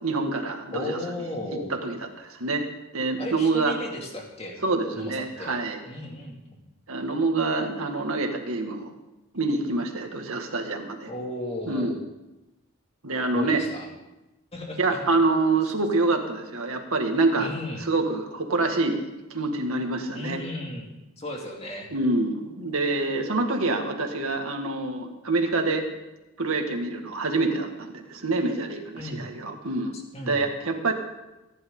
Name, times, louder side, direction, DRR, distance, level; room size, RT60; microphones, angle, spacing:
voice 1, 0.0-1.0 1.7-2.6 2.9-3.8 4.6-5.8 6.9-8.9 9.3-11.1 11.7-12.0 13.0-13.6 14.8-17.5 17.9-20.4 21.9-25.8 26.4-29.9 30.3-30.9, right 3 dB, 80° right, 4 dB, 2.0 m, -26 dB
voice 2, 0.7-1.7 3.2-4.6 4.9-5.5 5.8-6.4 11.0-12.0 13.3-13.9 14.5-15.0 15.6-15.7 17.3-17.8 20.1-20.9 21.2-21.9 28.9-29.3 29.9-30.5, left 1 dB, 30° left, 0 dB, 2.5 m, -35 dB
25.0 x 11.0 x 3.9 m, 1.0 s
head